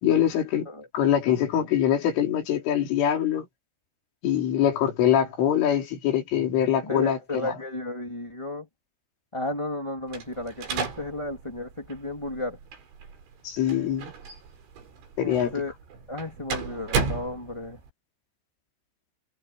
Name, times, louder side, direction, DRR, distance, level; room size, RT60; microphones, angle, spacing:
voice 1, 0.0-0.7 0.9-3.5 4.2-7.5 13.4-14.1 15.2-15.5, left 10 dB, 80° left, 6.3 m, -23 dB
voice 2, 6.8-8.7 9.3-12.6 15.2-15.7 16.1-17.8, left 2 dB, 10° left, 2.5 m, -33 dB
sound 1, 10.1-17.9, right 5 dB, 70° right, 7.2 m, -35 dB
omnidirectional pair, 5.6 m